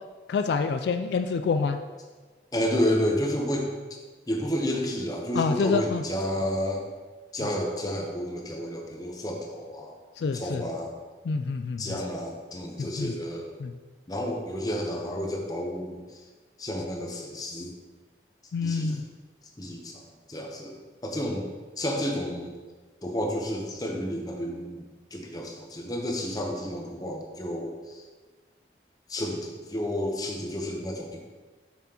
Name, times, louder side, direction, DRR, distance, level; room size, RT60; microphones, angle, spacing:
voice 1, 0.3-1.8 5.3-6.0 10.2-10.6 11.3-12.0 13.0-13.1 13.6-13.7 18.5-19.0, left 4 dB, 75° left, 8 dB, 0.3 m, -27 dB
voice 2, 2.5-3.7 4.3-6.8 7.3-10.0 10.3-10.9 11.8-13.6 14.1-16.2 16.6-17.8 18.6-19.0 19.6-20.0 20.3-22.5 23.0-24.8 25.1-28.0 29.1-31.2, equal, 20° left, 1 dB, 0.8 m, -31 dB
7.4 x 5.8 x 2.9 m, 1.4 s
head